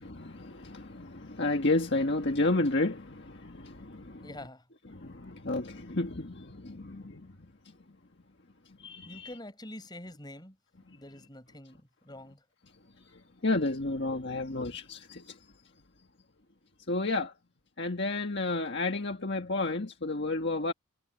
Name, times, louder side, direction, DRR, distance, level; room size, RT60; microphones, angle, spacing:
voice 1, 0.0-4.3 4.9-7.2 8.8-9.3 13.4-15.2 16.9-17.3 17.8-20.7, left 2 dB, 50° left, 1.6 m, -31 dB
voice 2, 4.2-4.6 9.0-10.6 10.9-12.4, left 1 dB, 20° left, 6.2 m, -46 dB
head